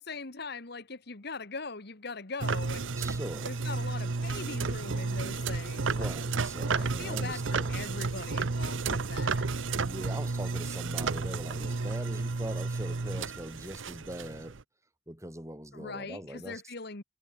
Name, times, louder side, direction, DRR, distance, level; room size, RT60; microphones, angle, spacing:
voice 1, 0.0-2.9 3.4-6.1 6.8-9.5 15.7-17.0, left 4 dB, 55° left, 1.7 m, -41 dB
sound 1, 2.4-14.6, right 4 dB, 80° right, 0.9 m, -32 dB
voice 2, 2.9-3.5 5.9-7.7 9.6-14.6 15.1-16.6, right 1 dB, 15° right, 4.9 m, -42 dB
head